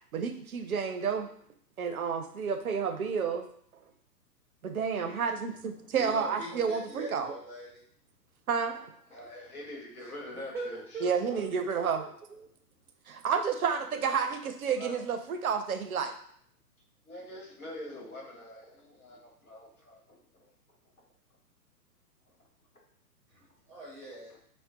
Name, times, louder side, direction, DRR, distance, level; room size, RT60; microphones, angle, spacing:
voice 1, 0.1-1.3 1.8-3.5 4.6-7.4 8.5-8.8 11.0-12.5 13.1-16.1, right 6 dB, 65° right, 7 dB, 0.5 m, -30 dB
voice 2, 5.8-7.8 10.3-11.5 23.3-24.3, right 1 dB, 5° right, -7 dB, 0.6 m, -42 dB
voice 3, 9.1-10.8 13.7-13.8 14.4-15.0 17.0-20.5 22.3-22.4, left 1 dB, 60° left, -1 dB, 1.3 m, -45 dB
5.5 x 2.1 x 2.4 m, 0.63 s
figure-of-eight pair, 115°, 48 cm